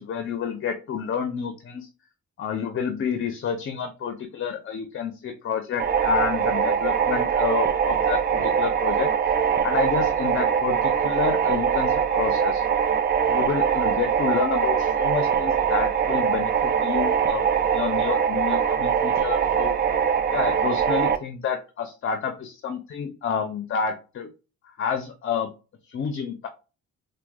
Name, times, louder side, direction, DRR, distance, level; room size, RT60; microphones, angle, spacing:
voice 1, 0.0-1.9 2.4-9.1 9.6-12.6 13.3-19.7 20.3-24.3 24.6-25.5 25.9-26.5, left 7 dB, 45° left, 7 dB, 0.6 m, -29 dB
sound 1, 5.8-21.2, right 7 dB, 35° right, 0.4 m, -22 dB
4.4 x 2.2 x 2.2 m, 0.32 s
cardioid pair, 90°, 30 cm